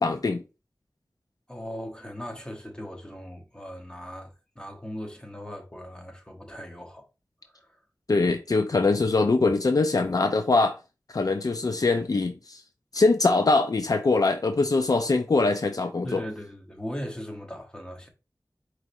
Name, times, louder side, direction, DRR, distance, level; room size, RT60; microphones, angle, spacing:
voice 1, 0.0-0.4 8.1-10.8 11.1-12.6 12.9-16.2, left 3 dB, 60° left, 0.4 m, -23 dB
voice 2, 1.5-7.1 7.5-7.8 16.0-18.1, equal, 10° left, 1.0 m, -39 dB
4.7 x 3.1 x 2.6 m
wide cardioid pair, 65°, 7 cm